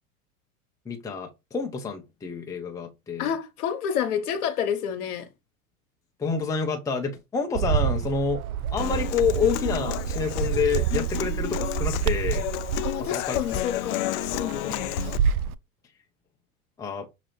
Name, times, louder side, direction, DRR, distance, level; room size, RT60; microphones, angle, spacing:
voice 1, 0.9-3.3 6.2-8.4 8.7-12.5 13.0-13.4 16.8-17.1, left 5 dB, 10° left, 0.6 m, -28 dB
voice 2, 3.2-5.3 12.8-14.9, left 8 dB, 85° left, 0.9 m, -29 dB
Bird, 7.5-15.5, right 8 dB, 75° right, 0.5 m, -28 dB
Human voice / Acoustic guitar, 8.8-15.2, left 14 dB, 55° left, 0.5 m, -32 dB
6.0 x 2.9 x 3.0 m
hypercardioid pair, 100°, 44 cm